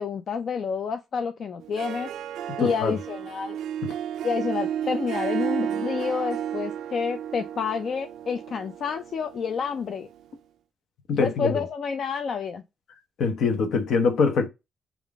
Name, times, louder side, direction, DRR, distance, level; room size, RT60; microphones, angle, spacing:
voice 1, 0.0-2.1 2.6-3.6 4.2-10.1 11.2-12.6, left 6 dB, 50° left, 0.4 m, -29 dB
Harp, 1.6-10.2, right 10 dB, 90° right, 0.3 m, -33 dB
voice 2, 2.6-2.9 11.1-11.6 13.2-14.5, left 5 dB, 75° left, 0.7 m, -23 dB
3.5 x 2.4 x 3.4 m
cardioid pair, 125°, 0 cm